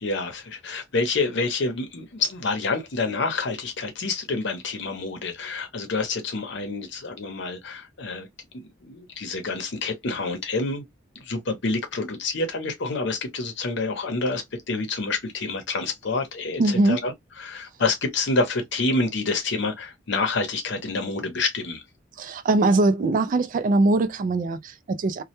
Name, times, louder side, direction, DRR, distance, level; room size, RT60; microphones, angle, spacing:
voice 1, 0.0-8.3 8.5-10.8 11.2-17.1 17.4-21.8, left 3 dB, 65° left, 0.8 m, -28 dB
voice 2, 16.6-17.0 22.2-25.2, right 2 dB, 45° right, 0.3 m, -21 dB
2.2 x 2.1 x 2.8 m
head